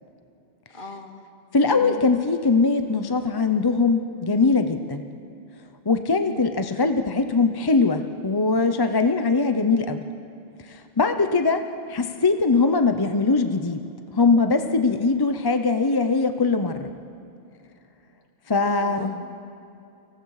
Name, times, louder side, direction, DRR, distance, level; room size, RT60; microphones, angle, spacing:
voice 1, 0.7-1.2 1.7-2.0 6.3-6.5 18.6-19.1, left 3 dB, 50° left, 2 dB, 2.2 m, -37 dB
voice 2, 1.5-5.0 5.8-10.0 10.6-13.8 14.1-16.9 18.5-19.2, left 4 dB, 25° left, 8 dB, 0.7 m, -21 dB
29.5 x 19.5 x 4.8 m, 2.7 s
omnidirectional pair, 1.1 m